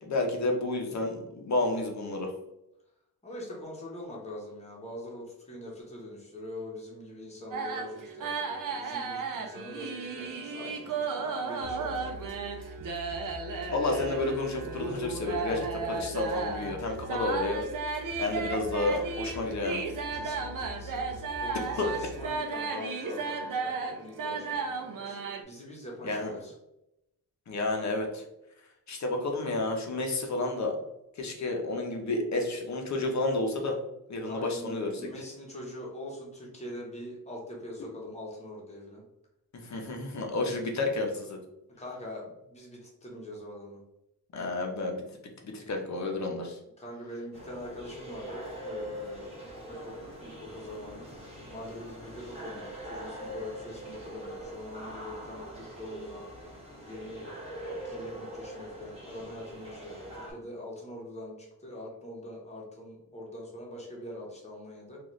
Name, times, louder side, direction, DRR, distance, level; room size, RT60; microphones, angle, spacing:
voice 1, 0.0-2.3 13.7-17.6 18.2-19.8 21.8-21.9 26.0-26.3 27.5-28.2 28.9-30.8 31.2-33.8 34.1-35.1 39.5-41.4 44.3-45.0 45.4-46.6, left 2 dB, 50° left, 2 dB, 0.7 m, -31 dB
voice 2, 3.2-12.3 20.1-25.2 25.4-26.5 34.2-39.0 41.8-43.8 46.8-49.3 49.6-51.1 51.5-56.2 56.8-57.3 57.8-65.0, left 1 dB, 20° left, -3 dB, 0.9 m, -43 dB
sound 1, 7.5-25.4, right 4 dB, 60° right, 0.5 m, -34 dB
sound 2, 11.6-22.3, left 2 dB, 80° left, 0.7 m, -45 dB
sound 3, 47.3-60.3, equal, 15° right, 1.1 m, -43 dB
3.9 x 2.4 x 3.0 m, 0.85 s
wide cardioid pair, 175°, 37 cm